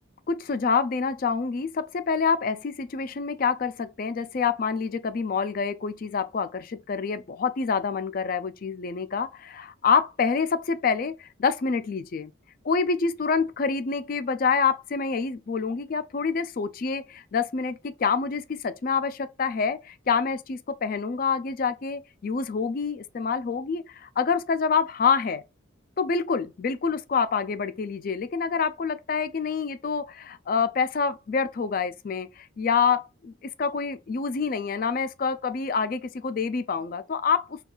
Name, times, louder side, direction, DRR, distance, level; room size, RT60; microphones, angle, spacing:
voice 1, 0.3-12.3 12.6-25.4 26.0-37.6, left 5 dB, 45° left, 0.4 m, -27 dB
5.3 x 2.3 x 2.3 m
head